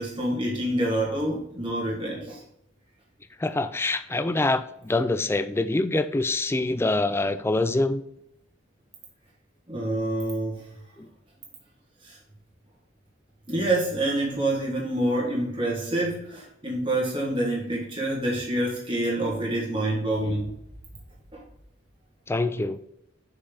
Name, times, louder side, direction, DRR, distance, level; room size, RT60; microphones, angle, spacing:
voice 1, 0.0-2.4 9.7-10.7 12.0-12.2 13.5-20.5 21.3-21.4, right 1 dB, 25° right, -4 dB, 1.6 m, -27 dB
voice 2, 3.4-8.0 11.0-11.1 22.3-22.8, left 2 dB, 10° left, 11 dB, 0.3 m, -25 dB
6.8 x 5.4 x 3.9 m, 0.76 s
head